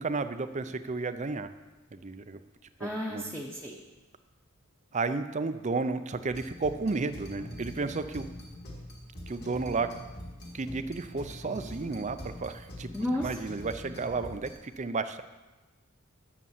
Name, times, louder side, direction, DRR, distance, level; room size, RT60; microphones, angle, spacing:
voice 1, 0.0-1.5 1.9-2.4 2.8-3.2 4.9-8.3 9.3-9.9 10.5-12.9 13.2-15.2, right 3 dB, 35° right, 11 dB, 0.5 m, -32 dB
voice 2, 2.8-3.8 12.9-13.3, left 1 dB, 5° left, -4 dB, 1.0 m, -33 dB
sound 1, 6.3-14.5, left 1 dB, 50° left, 2.3 m, -44 dB
11.0 x 7.0 x 7.2 m, 1.1 s
head